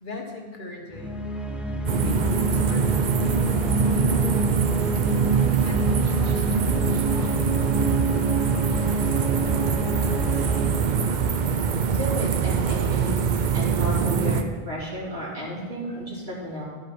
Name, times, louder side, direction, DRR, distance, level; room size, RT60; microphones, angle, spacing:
voice 1, 0.0-1.2 2.0-3.5 5.6-7.8, left 2 dB, 50° left, 0 dB, 1.5 m, -40 dB
sound 1, 0.9-12.5, right 2 dB, ahead, 0.5 m, -28 dB
sound 2, 1.9-14.4, right 6 dB, 55° right, 0.7 m, -24 dB
voice 2, 11.9-13.2 13.5-16.6, equal, 85° right, -6 dB, 3.1 m, -33 dB
12.5 x 5.3 x 6.0 m, 1.5 s
omnidirectional pair, 1.1 m